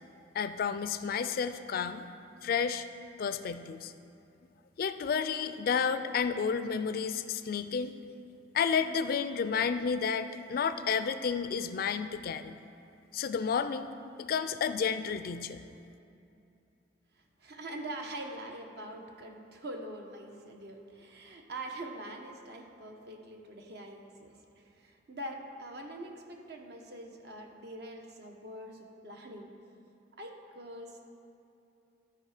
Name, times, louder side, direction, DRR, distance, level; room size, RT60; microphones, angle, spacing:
voice 1, 0.3-2.1 2.4-2.8 3.2-3.9 4.8-7.9 8.5-12.5 13.1-13.9 14.2-15.6, left 6 dB, 55° left, 11 dB, 0.3 m, -31 dB
voice 2, 17.2-29.5 30.2-31.0, right 1 dB, 60° right, 2 dB, 1.0 m, -44 dB
13.0 x 4.9 x 4.9 m, 2.7 s
head